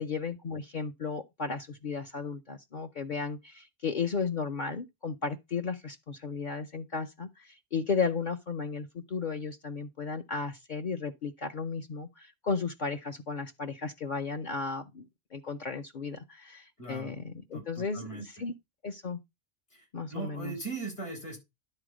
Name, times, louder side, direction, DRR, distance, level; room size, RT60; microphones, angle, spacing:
voice 1, 0.0-18.5 18.8-19.2 19.9-20.5, left 5 dB, 50° left, 0.8 m, -34 dB
voice 2, 16.8-17.1 17.5-18.2 19.7-19.8 20.1-21.4, right 3 dB, 80° left, 5.1 m, -39 dB
11.0 x 3.9 x 4.9 m
omnidirectional pair, 1.1 m